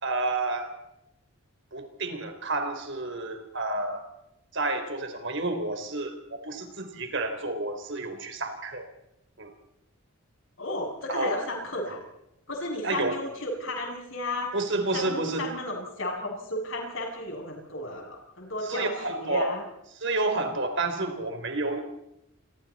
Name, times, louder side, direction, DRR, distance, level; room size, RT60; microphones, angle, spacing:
voice 1, 0.0-0.7 1.7-4.0 4.5-8.9 9.4-9.5 11.1-11.4 12.8-13.2 14.5-15.5 18.6-19.5 19.9-21.8, right 2 dB, 55° right, 6 dB, 3.8 m, -30 dB
voice 2, 10.6-12.0 12.5-14.5 14.9-19.6, left 1 dB, 60° left, 1 dB, 7.7 m, -34 dB
28.5 x 23.5 x 4.3 m, 0.84 s
head